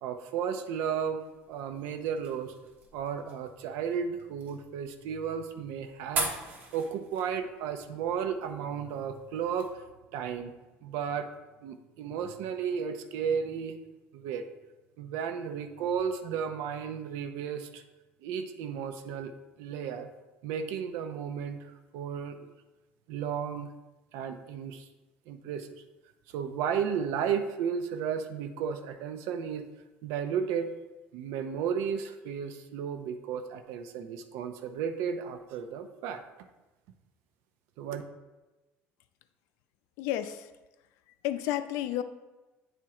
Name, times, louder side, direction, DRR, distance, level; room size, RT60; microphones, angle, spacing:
voice 1, 0.0-2.5 2.9-6.3 6.7-9.8 10.1-10.5 10.8-11.3 11.6-13.8 14.1-14.5 15.0-17.8 18.2-19.3 19.6-20.1 20.4-22.5 23.1-23.7 24.1-24.8 25.3-25.7 26.3-29.7 30.0-30.7 31.1-36.2 37.8-38.0, right 7 dB, 85° right, 8 dB, 0.7 m, -33 dB
sound 1, 1.2-9.7, right 3 dB, 45° right, 1.3 m, -41 dB
voice 2, 40.0-40.5 41.2-42.0, left 12 dB, 90° left, 11 dB, 0.5 m, -31 dB
9.0 x 4.5 x 3.7 m, 1.1 s
cardioid pair, 165°, 5 cm